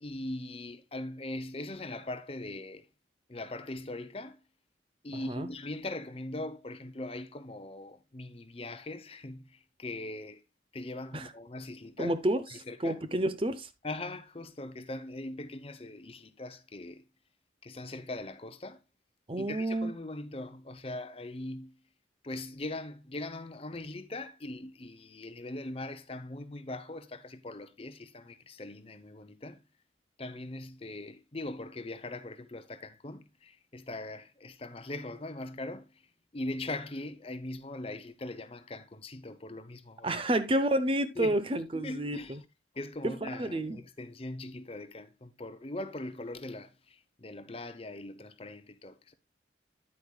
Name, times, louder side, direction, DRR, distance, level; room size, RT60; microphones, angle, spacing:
voice 1, 0.0-2.9 3.3-4.4 5.0-10.4 10.7-12.1 12.5-13.0 13.8-17.0 17.6-18.8 19.4-21.8 22.2-29.6 30.2-36.0 36.3-40.2 41.2-42.4 42.7-49.1, left 2 dB, 30° left, 0.8 m, -41 dB
voice 2, 5.1-5.5 11.1-11.3 12.0-12.4 12.8-13.7 19.3-19.9 40.0-42.4 43.0-43.1 43.4-43.8, right 1 dB, 30° right, 0.7 m, -29 dB
9.8 x 8.4 x 2.3 m
head